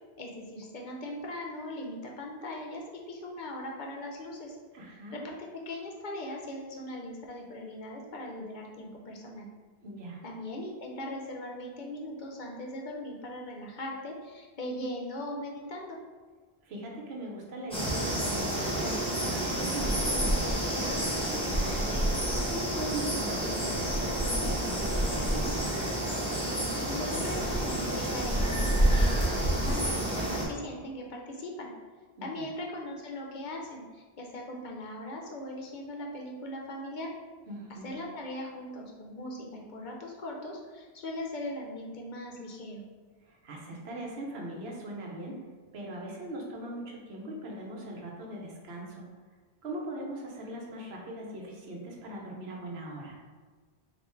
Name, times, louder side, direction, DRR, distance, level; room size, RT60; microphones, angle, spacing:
voice 1, 0.2-4.6 5.1-5.4 5.7-9.5 10.2-16.0 26.9-29.9 30.3-31.7 32.2-37.1 37.7-42.8, left 1 dB, 55° left, -1 dB, 0.6 m, -39 dB
voice 2, 4.7-5.2 9.8-10.2 16.6-21.9 22.5-25.7 32.2-32.5 37.5-37.9 43.3-45.4 45.7-49.1 49.6-53.2, right 1 dB, 75° right, -1 dB, 1.0 m, -40 dB
sound 1, 17.7-30.4, right 1 dB, 5° left, 0.8 m, -29 dB
3.4 x 2.5 x 4.3 m, 1.4 s
omnidirectional pair, 1.1 m